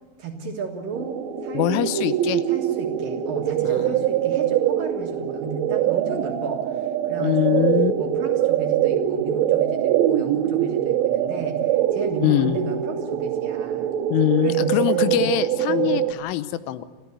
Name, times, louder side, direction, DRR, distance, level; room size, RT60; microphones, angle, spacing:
voice 1, 0.2-2.0 2.5-7.7 8.0-13.9 14.4-15.3 15.7-15.9, right 5 dB, 60° right, 2 dB, 2.7 m, -32 dB
sound 1, 0.9-16.1, right 11 dB, 75° right, 3.4 m, -23 dB
voice 2, 1.5-2.4 3.7-3.9 7.2-7.9 12.2-12.6 14.1-16.8, left 14 dB, 85° left, 13 dB, 3.3 m, -23 dB
29.5 x 14.0 x 8.3 m, 1.4 s
omnidirectional pair, 5.5 m